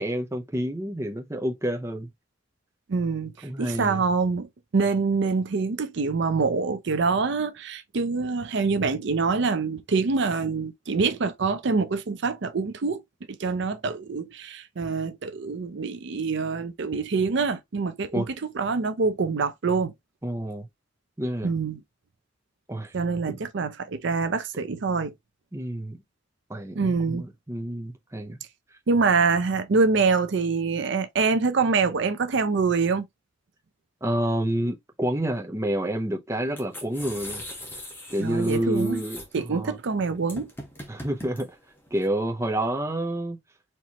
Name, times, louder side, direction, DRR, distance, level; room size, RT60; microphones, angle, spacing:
voice 1, 0.0-2.1 3.4-4.0 18.1-18.3 20.2-20.7 21.2-21.5 22.7-22.9 23.3-23.4 25.5-26.0 26.5-28.4 34.0-37.4 38.1-39.8 40.9-41.5 41.9-43.4, right 1 dB, 15° right, 0.7 m, -28 dB
voice 2, 2.9-3.3 3.6-4.5 4.7-13.0 13.3-18.2 18.5-19.9 21.4-21.8 22.9-25.1 26.8-27.2 28.9-33.1 38.2-39.0 39.3-40.5, right 4 dB, 65° right, 0.5 m, -25 dB
sound 1, 36.4-42.1, left 1 dB, 10° left, 1.2 m, -41 dB
4.4 x 3.1 x 2.8 m
head